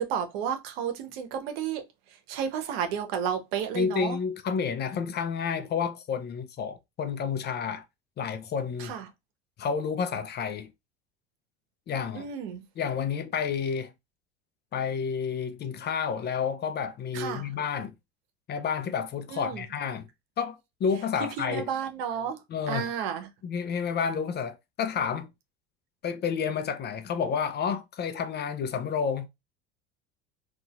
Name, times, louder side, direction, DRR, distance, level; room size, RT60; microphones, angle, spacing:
voice 1, 0.0-1.8 2.3-4.2 8.8-9.1 12.1-12.7 17.1-17.5 19.3-19.6 21.4-22.4 22.7-23.3, right 8 dB, 70° right, 0.9 m, -32 dB
voice 2, 3.7-7.8 8.2-8.9 9.6-10.7 11.9-12.3 12.8-13.9 14.7-17.9 18.5-20.1 20.4-21.7 22.5-22.9 23.4-25.3 26.0-29.3, left 6 dB, 35° left, 0.6 m, -30 dB
4.0 x 2.4 x 2.4 m
hypercardioid pair, 80°, 31 cm